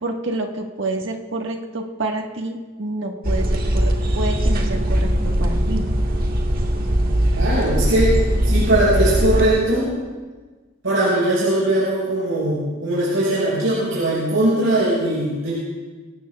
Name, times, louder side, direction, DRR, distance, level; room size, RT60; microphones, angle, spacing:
voice 1, 0.0-5.8, right 2 dB, 65° right, 2 dB, 1.5 m, -28 dB
sound 1, 3.2-9.5, equal, 45° right, 1.6 m, -20 dB
voice 2, 7.3-9.9 10.8-15.5, right 1 dB, 85° right, -7 dB, 5.3 m, -20 dB
23.5 x 18.0 x 2.4 m, 1.3 s
head